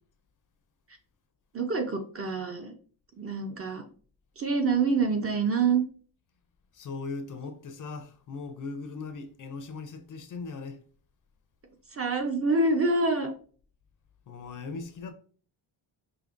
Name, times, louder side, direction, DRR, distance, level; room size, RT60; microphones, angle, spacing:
voice 1, 1.5-2.7 3.2-3.8 4.4-5.8 11.9-13.3, right 3 dB, 30° right, 0.5 m, -26 dB
voice 2, 6.7-10.8 14.3-15.1, left 4 dB, 45° left, 0.5 m, -39 dB
5.1 x 2.7 x 2.5 m
wide cardioid pair, 140°, 45 cm